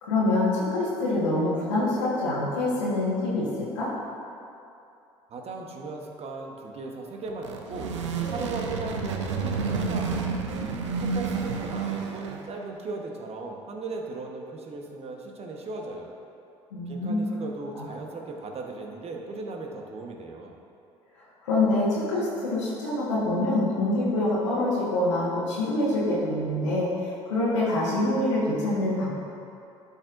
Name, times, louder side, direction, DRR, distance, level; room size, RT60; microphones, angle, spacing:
voice 1, 0.0-3.9 16.7-17.2 17.7-17.8 21.4-29.1, left 2 dB, 90° left, -8 dB, 1.4 m, -25 dB
voice 2, 5.3-8.0 8.3-10.3 11.0-16.1 16.9-20.6, right 3 dB, 45° right, 1 dB, 1.1 m, -37 dB
sound 1, 7.3-12.6, right 5 dB, 90° right, 0.6 m, -30 dB
12.0 x 5.5 x 2.5 m, 2.7 s
hypercardioid pair, 60°, 15 cm